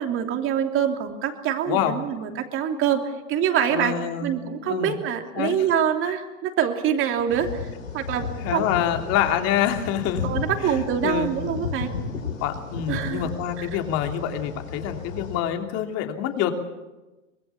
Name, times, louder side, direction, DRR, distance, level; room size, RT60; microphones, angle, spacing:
voice 1, 0.0-3.0 3.3-4.0 4.2-8.8 10.2-11.9 12.9-13.3 13.6-13.8, right 9 dB, 30° right, 5 dB, 3.0 m, -25 dB
voice 2, 1.7-2.0 3.7-4.3 4.6-4.9 5.4-5.5 8.4-10.2 10.6-11.3 12.4-16.5, left 10 dB, 40° left, 5 dB, 3.0 m, -26 dB
sound 1, 7.3-15.4, left 5 dB, 85° left, 6.4 m, -34 dB
24.5 x 21.0 x 7.1 m, 1.1 s
hypercardioid pair, 115°, 39 cm